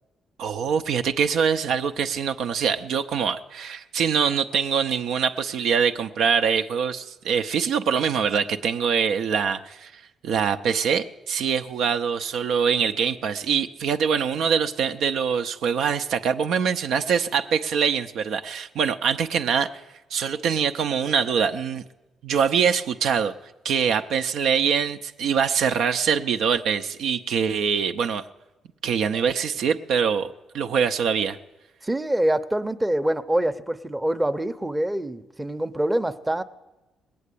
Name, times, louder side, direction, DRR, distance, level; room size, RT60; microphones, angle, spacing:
voice 1, 0.4-9.9 10.2-19.7 20.1-21.8 22.2-23.3 23.6-28.2 28.8-31.4, right 7 dB, 75° right, 7 dB, 0.6 m, -24 dB
voice 2, 31.8-36.4, right 1 dB, 10° right, 9 dB, 0.7 m, -25 dB
19.5 x 8.5 x 8.4 m, 1.0 s
cardioid pair, 90°, 0 cm